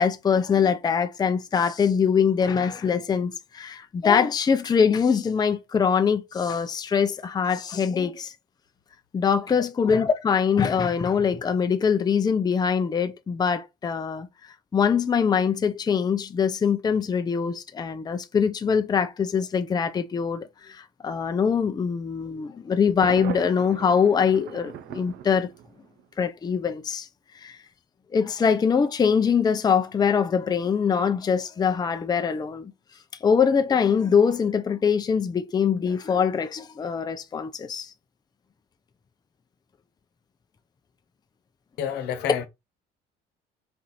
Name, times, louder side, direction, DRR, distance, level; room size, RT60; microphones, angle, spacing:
voice 1, 0.0-8.3 9.1-14.3 14.7-25.5 26.2-27.1 27.3-27.6 28.1-32.7 33.2-37.9, left 6 dB, 25° left, 0.5 m, -23 dB
Thunder, 23.0-26.0, right 11 dB, 75° right, 0.5 m, -38 dB
voice 2, 41.8-42.5, left 9 dB, 80° left, 0.9 m, -29 dB
4.3 x 2.5 x 4.1 m
cardioid pair, 110°, 17 cm